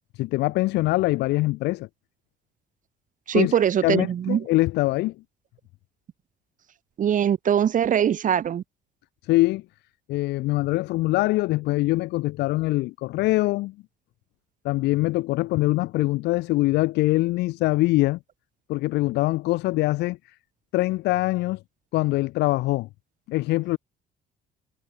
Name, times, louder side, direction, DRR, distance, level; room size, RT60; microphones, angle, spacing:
voice 1, 0.0-1.9 3.3-3.5 3.8-5.1 9.2-9.6 10.1-13.7 14.6-18.2 18.7-20.2 20.7-21.6 21.9-22.9 23.3-23.8, left 19 dB, 85° left, 1.0 m, -23 dB
voice 2, 3.3-4.4 7.0-8.6, right 9 dB, 50° right, 4.3 m, -22 dB
cardioid pair, 110°, 17 cm